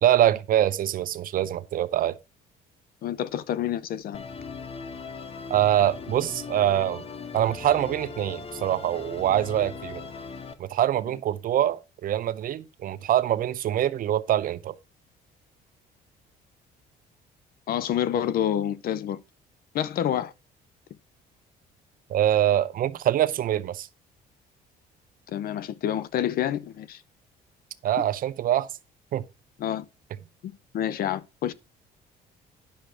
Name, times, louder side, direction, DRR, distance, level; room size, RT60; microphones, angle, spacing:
voice 1, 0.0-2.2 5.5-7.0 7.3-10.1 10.6-14.7 22.1-23.9 27.8-28.7 29.1-29.2, right 11 dB, 55° right, 0.8 m, -24 dB
voice 2, 3.0-4.2 17.7-19.2 19.7-20.3 25.3-27.0 29.6-29.9 30.4-31.5, left 10 dB, 60° left, 0.7 m, -28 dB
Musical instrument, 4.1-10.5, left 4 dB, 35° left, 1.2 m, -39 dB
10.0 x 6.4 x 4.5 m
cardioid pair, 110°, 17 cm